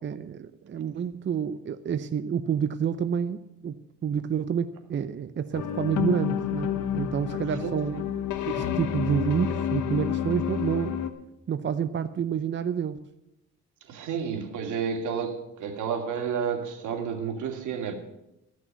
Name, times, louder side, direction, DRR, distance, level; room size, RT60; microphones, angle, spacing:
voice 1, 0.0-8.0 8.5-11.1 11.5-13.0, right 8 dB, 40° right, 11 dB, 0.6 m, -29 dB
sound 1, 5.5-11.1, left 9 dB, 80° left, 1.3 m, -29 dB
voice 2, 7.5-8.0 13.8-17.9, right 6 dB, 80° right, 4 dB, 2.3 m, -31 dB
13.5 x 6.4 x 9.2 m, 0.90 s
cardioid pair, 90°, 30 cm